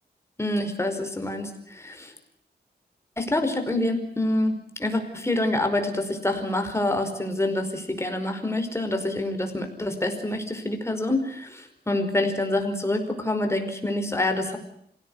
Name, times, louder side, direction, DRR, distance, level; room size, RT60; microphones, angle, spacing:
voice 1, 0.4-2.1 3.2-14.6, left 1 dB, 15° left, 5 dB, 5.0 m, -26 dB
27.0 x 17.0 x 9.6 m, 0.71 s
wide cardioid pair, 105°, 18 cm